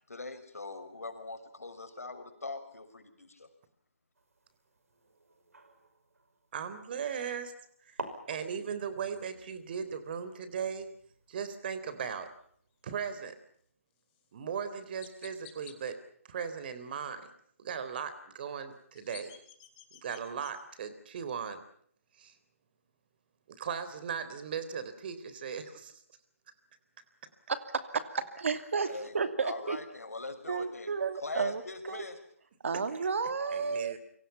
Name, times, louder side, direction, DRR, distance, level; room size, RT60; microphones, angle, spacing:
voice 1, 0.1-3.5 28.8-29.2 29.4-32.2, left 3 dB, 80° left, 7 dB, 6.0 m, -42 dB
sound 1, 4.2-7.1 7.7-7.8 8.0-12.6, right 3 dB, 75° right, 5.7 m, -49 dB
voice 2, 6.5-7.5 7.9-10.9 11.3-12.3 12.8-13.3 14.3-16.0 16.3-17.2 17.6-19.3 20.0-21.6 22.2-22.3 23.5-25.9 33.5-34.0, right 7 dB, 40° right, 12 dB, 3.7 m, -38 dB
Chirp tweet, 14.1-14.2 15.0-15.8 18.7-20.5, left 11 dB, 25° left, 4.3 m, -52 dB
voice 3, 27.5-28.0 28.4-28.9 29.1-29.8 30.5-32.0 32.6-33.9, right 5 dB, 60° right, 9 dB, 2.7 m, -32 dB
29.0 x 24.5 x 5.8 m, 0.63 s
figure-of-eight pair, 145°, 8 cm